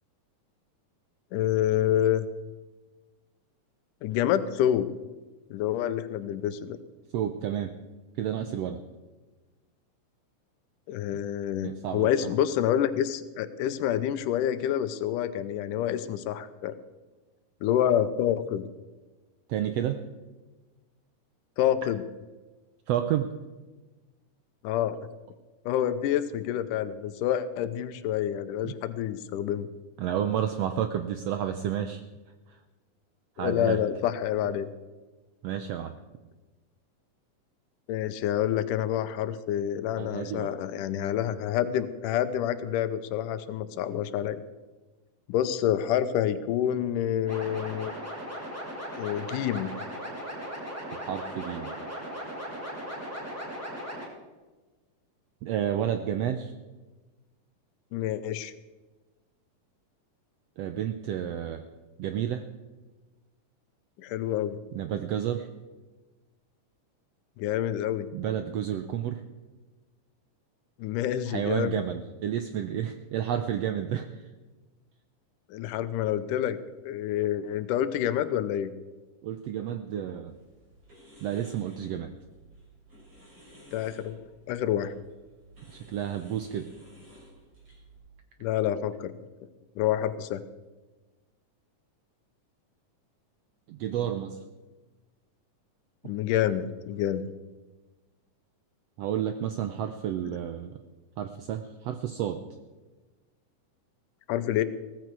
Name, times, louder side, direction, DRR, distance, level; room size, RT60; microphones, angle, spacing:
voice 1, 1.3-2.3 4.0-4.9 5.5-6.8 10.9-16.7 17.6-18.6 21.6-22.0 24.6-25.0 25.7-29.7 33.4-34.7 37.9-44.4 45.3-47.9 48.9-49.7 57.9-58.5 64.0-64.6 67.4-68.1 70.8-71.7 75.5-76.6 76.8-78.7 83.7-84.2 84.5-85.0 88.4-89.1 89.8-90.4 96.0-97.3 104.3-104.6, left 11 dB, 85° left, 12 dB, 2.3 m, -28 dB
voice 2, 7.1-7.8 8.2-8.8 11.6-12.3 19.5-20.0 22.9-23.3 28.6-28.8 30.0-32.0 32.5-32.6 33.4-33.8 35.4-36.0 40.0-40.5 50.9-51.7 55.4-56.5 60.6-61.6 62.0-62.5 64.7-65.5 68.1-69.2 71.3-74.3 79.2-80.3 81.2-82.1 85.7-86.7 93.7-94.4 99.0-100.8 101.2-102.4, right 10 dB, 80° right, 8 dB, 1.5 m, -31 dB
sound 1, 47.2-54.1, equal, 5° right, 2.6 m, -38 dB
sound 2, 80.3-88.0, right 1 dB, 45° right, 7.0 m, -54 dB
16.5 x 14.5 x 4.7 m, 1.2 s
omnidirectional pair, 3.7 m